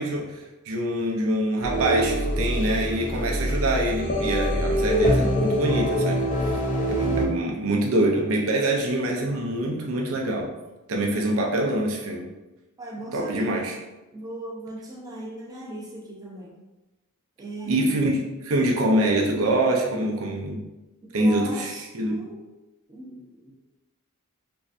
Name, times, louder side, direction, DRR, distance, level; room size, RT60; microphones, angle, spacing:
voice 1, 0.0-6.2 6.9-10.5 10.9-12.3 13.1-13.7 17.7-20.6 21.1-22.2, right 1 dB, 65° right, 0 dB, 0.5 m, -25 dB
sound 1, 1.6-7.3, equal, 35° left, 0.5 m, -24 dB
voice 2, 12.8-13.6 14.1-16.6 17.4-18.1 21.0-22.4 22.9-23.5, right 2 dB, 15° right, -3 dB, 0.6 m, -38 dB
3.1 x 2.6 x 2.4 m, 1.1 s
head